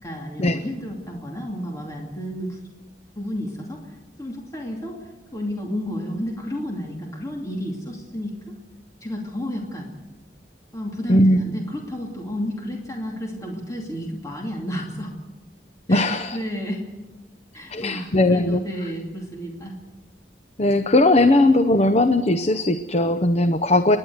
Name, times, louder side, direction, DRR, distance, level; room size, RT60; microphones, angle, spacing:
voice 1, 0.0-2.6 3.2-3.8 4.2-5.0 5.3-8.3 9.0-9.9 10.7-15.1 15.9-16.8 17.5-19.8, equal, 20° left, 0 dB, 2.6 m, -31 dB
voice 2, 11.1-11.4 15.9-16.4 17.7-18.6 20.6-24.0, left 1 dB, 35° left, 10 dB, 0.7 m, -18 dB
30.0 x 11.0 x 8.0 m, 1.2 s
head